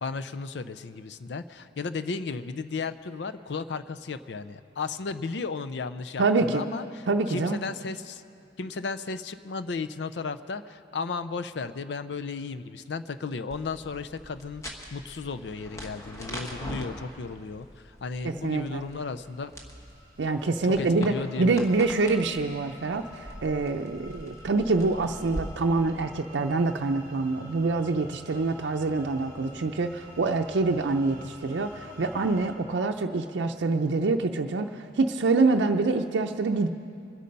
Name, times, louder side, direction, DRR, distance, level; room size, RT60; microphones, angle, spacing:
voice 1, 0.0-7.0 7.3-8.2 8.6-19.5 20.6-21.7, left 4 dB, 75° left, 11 dB, 0.5 m, -34 dB
voice 2, 6.2-6.6 7.1-7.6 18.2-18.9 20.2-36.7, right 3 dB, 90° right, 3 dB, 0.5 m, -26 dB
sound 1, 13.5-25.4, equal, 20° left, 1.5 m, -43 dB
sound 2, 18.8-32.5, equal, 45° left, 4.1 m, -50 dB
24.5 x 8.5 x 5.3 m, 2.4 s
head